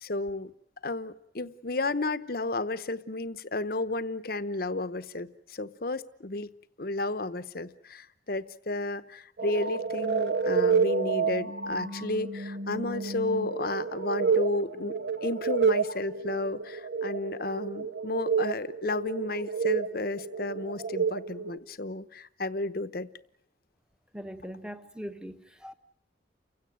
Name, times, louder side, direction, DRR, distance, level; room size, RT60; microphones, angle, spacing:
voice 1, 0.0-0.5 0.8-6.5 6.8-23.1, left 2 dB, 50° left, 1.0 m, -32 dB
sound 1, 9.4-21.6, right 5 dB, 65° right, 1.4 m, -29 dB
voice 2, 24.1-25.7, equal, 5° right, 1.3 m, -41 dB
29.5 x 16.5 x 9.2 m
head